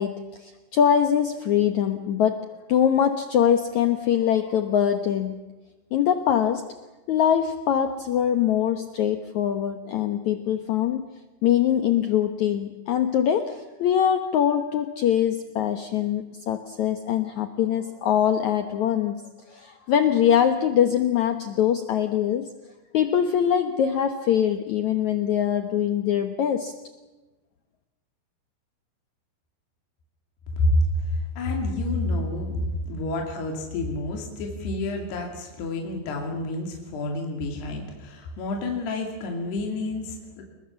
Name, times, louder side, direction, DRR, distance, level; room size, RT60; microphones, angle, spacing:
voice 1, 0.0-5.5 5.9-6.7 7.1-11.1 11.4-19.1 19.5-22.5 22.9-26.7, left 9 dB, 85° left, 7 dB, 1.6 m, -23 dB
voice 2, 30.5-40.4, left 1 dB, 65° left, 1 dB, 4.5 m, -28 dB
29.5 x 20.5 x 7.2 m, 1.1 s
omnidirectional pair, 5.1 m